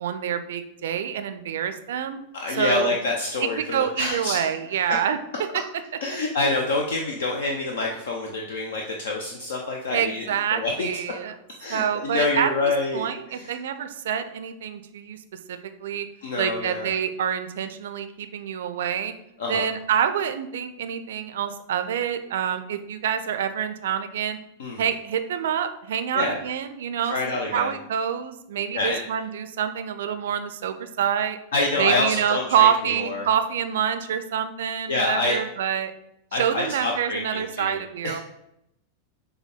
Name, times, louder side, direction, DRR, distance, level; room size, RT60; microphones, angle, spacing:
voice 1, 0.0-2.2 2.6-2.9 3.6-5.2 9.9-11.3 11.7-12.5 12.9-15.2 15.5-16.1 16.4-19.1 19.5-24.4 24.8-31.4 31.8-35.9 36.3-38.2, right 9 dB, 60° right, 9 dB, 0.4 m, -26 dB
voice 2, 2.3-4.3 6.0-10.2 10.5-10.9 11.6-13.5 16.2-16.9 19.4-19.6 24.6-24.8 26.1-26.4 27.1-27.7 28.7-29.0 31.5-32.7 33.0-33.3 34.9-35.4 36.3-37.8 38.0-38.2, left 2 dB, 60° left, 1 dB, 0.5 m, -26 dB
6.7 x 2.2 x 3.6 m, 0.81 s
figure-of-eight pair, 90°, 0 cm